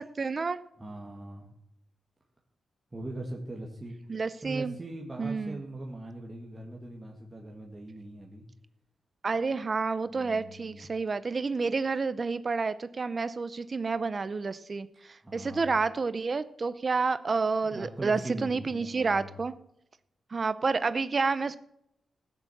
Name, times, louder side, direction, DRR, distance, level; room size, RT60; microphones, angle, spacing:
voice 1, 0.0-0.6 4.1-4.7 5.2-5.6 9.2-19.5 20.3-21.6, right 4 dB, 35° right, 14 dB, 0.6 m, -29 dB
voice 2, 0.8-1.5 2.9-4.0 4.4-8.4 10.1-10.9 15.2-15.7 17.6-19.3, right 1 dB, 20° right, -1 dB, 1.8 m, -41 dB
15.5 x 7.1 x 7.1 m, 0.79 s
cardioid pair, 110°, 0 cm